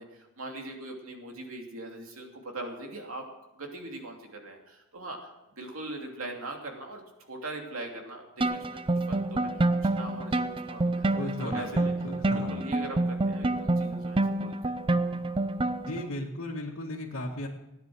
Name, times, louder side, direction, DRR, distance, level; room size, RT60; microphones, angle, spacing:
voice 1, 0.0-3.2 3.5-5.3 5.6-8.8 9.1-11.9 12.3-14.7, right 2 dB, 75° right, 2 dB, 2.8 m, -41 dB
sound 1, 8.4-16.1, right 2 dB, 25° right, 0.5 m, -28 dB
voice 2, 11.2-12.6 15.9-17.5, left 1 dB, 70° left, -6 dB, 1.8 m, -36 dB
16.0 x 9.9 x 6.3 m, 0.95 s
head